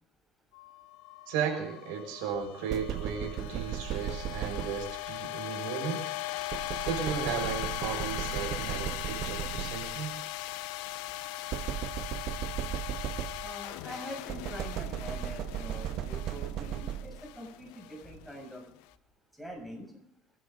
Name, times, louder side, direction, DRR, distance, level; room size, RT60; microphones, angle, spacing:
sound 1, 0.5-18.8, left 16 dB, 85° left, 1.0 m, -39 dB
voice 1, 1.3-6.1 6.8-10.1, right 7 dB, 85° right, 2 dB, 6.2 m, -35 dB
sound 2, 2.7-5.2 6.5-10.1 11.5-13.7 14.3-17.4, right 12 dB, 60° right, 0.8 m, -36 dB
voice 2, 13.4-18.6 19.4-19.9, equal, 5° right, 0 dB, 7.2 m, -44 dB
29.5 x 11.0 x 3.9 m, 0.71 s
cardioid pair, 115°, 0 cm